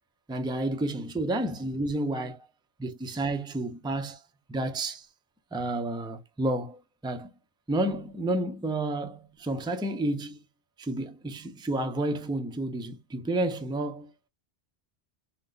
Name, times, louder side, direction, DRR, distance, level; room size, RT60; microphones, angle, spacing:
voice 1, 0.3-2.4 2.8-4.2 4.5-5.1 5.5-7.3 7.7-10.4 10.8-14.3, right 1 dB, 5° right, 0.4 m, -30 dB
3.8 x 2.3 x 3.9 m
omnidirectional pair, 1.1 m